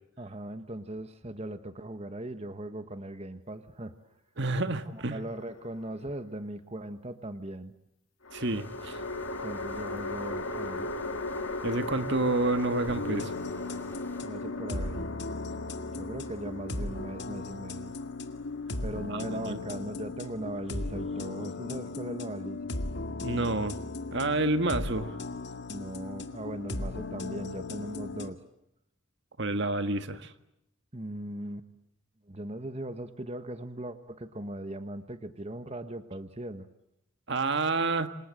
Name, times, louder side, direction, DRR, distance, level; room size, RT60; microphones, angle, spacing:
voice 1, 0.2-3.9 4.8-7.7 9.4-10.9 14.2-15.1 16.0-17.9 18.8-22.7 25.7-28.4 30.9-31.6 32.3-36.7, right 1 dB, 30° right, 1.4 m, -39 dB
voice 2, 4.4-5.2 8.3-9.0 11.6-13.3 19.1-19.6 23.2-23.8 24.1-25.2 29.4-30.3 37.3-38.1, right 2 dB, 60° right, 1.7 m, -29 dB
sound 1, 5.1-6.0 8.2-19.6, left 2 dB, 80° left, 2.3 m, -38 dB
sound 2, 8.4-14.2, left 1 dB, 10° left, 4.1 m, -53 dB
sound 3, 12.9-28.3, left 2 dB, 60° left, 2.0 m, -37 dB
28.0 x 27.0 x 7.7 m
head